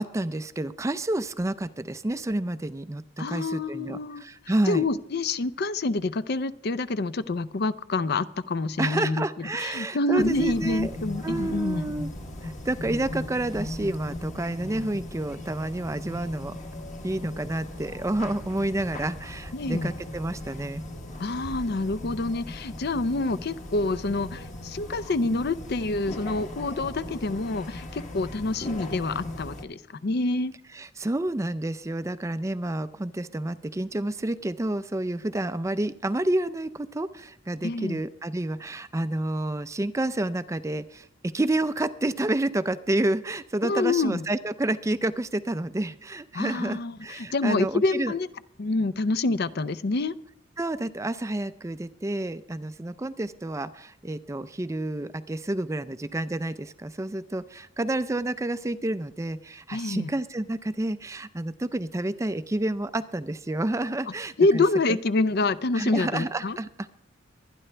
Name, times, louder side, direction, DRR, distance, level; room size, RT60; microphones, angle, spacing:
voice 1, 0.0-4.9 8.8-10.9 11.2-12.1 12.4-16.6 17.0-20.8 30.7-48.1 50.6-64.6 64.9-65.0 65.7-66.7, right 1 dB, 15° right, 13 dB, 0.4 m, -29 dB
voice 2, 3.2-4.2 4.7-11.9 19.5-19.9 21.2-30.5 37.6-38.0 43.6-44.2 46.3-48.3 48.6-50.2 59.7-60.1 64.4-66.6, left 3 dB, 55° left, 15 dB, 0.5 m, -27 dB
sound 1, 10.2-29.6, left 1 dB, 40° left, 1.3 m, -38 dB
23.5 x 10.0 x 3.3 m, 0.72 s
head